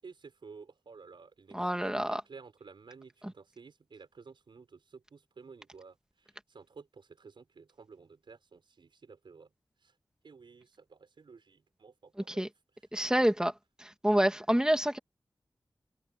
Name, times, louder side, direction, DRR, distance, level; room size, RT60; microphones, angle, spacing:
voice 1, 0.0-9.5 9.8-9.9 10.2-12.4, right 5 dB, 90° right, 5.8 m, -53 dB
voice 2, 1.5-2.2 12.3-12.5 12.9-13.5 13.8-15.0, right 1 dB, 10° right, 2.5 m, -27 dB
cardioid pair, 40°, 8 cm